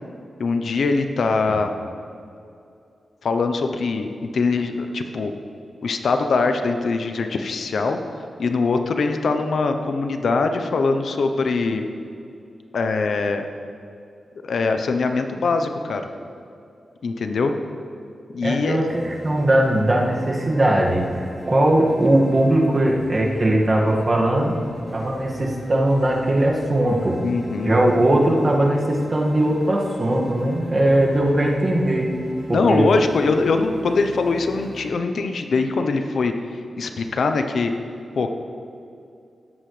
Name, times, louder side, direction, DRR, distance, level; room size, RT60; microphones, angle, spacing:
voice 1, 0.4-1.7 3.2-5.3 5.8-8.0 8.4-11.8 12.7-13.4 14.4-16.0 17.0-17.5 18.3-18.8 27.2-27.7 32.5-36.3 36.8-37.7 38.2-38.3, left 4 dB, 75° left, 6 dB, 0.7 m, -22 dB
voice 2, 1.2-1.6 18.4-21.1 21.5-24.6 24.9-27.2 27.6-32.2 32.5-32.9, right 1 dB, 40° right, -2 dB, 1.9 m, -19 dB
sound 1, 18.9-34.9, right 1 dB, 15° right, 2.8 m, -39 dB
17.0 x 7.8 x 3.3 m, 2.5 s
cardioid pair, 70°, 0 cm